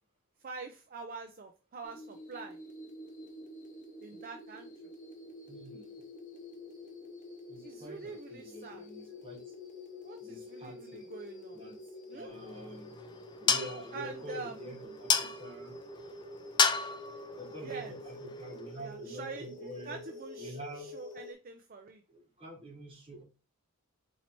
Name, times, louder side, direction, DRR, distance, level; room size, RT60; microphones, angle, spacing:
voice 1, 0.4-2.6 4.0-4.9 7.6-8.9 10.0-11.6 12.1-12.3 13.9-14.8 17.6-17.9 18.8-22.0, right 4 dB, 40° right, 5 dB, 0.5 m, -45 dB
sound 1, 1.8-21.3, left 1 dB, 35° left, 0.9 m, -48 dB
voice 2, 5.5-5.9 7.5-9.4 10.2-11.1 11.5-13.0 13.4-15.7 17.3-20.0 20.4-20.9 22.1-23.2, equal, 25° right, -1 dB, 1.5 m, -46 dB
rock on metal post, 12.3-18.7, left 5 dB, 20° left, 0.3 m, -33 dB
4.3 x 2.8 x 4.4 m, 0.33 s
head